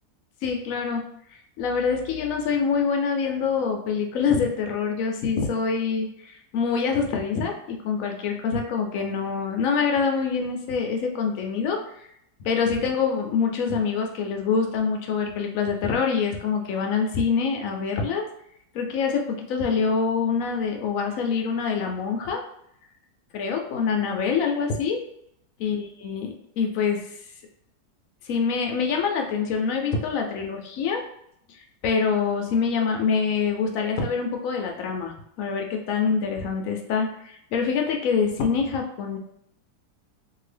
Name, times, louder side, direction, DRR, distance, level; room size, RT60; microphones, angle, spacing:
voice 1, 0.4-12.1 12.4-18.2 18.7-22.4 23.3-25.0 25.6-26.3 26.6-27.1 28.2-31.0 31.5-39.2, left 5 dB, 70° left, 3 dB, 0.8 m, -25 dB
2.8 x 2.6 x 3.2 m, 0.72 s
omnidirectional pair, 1.8 m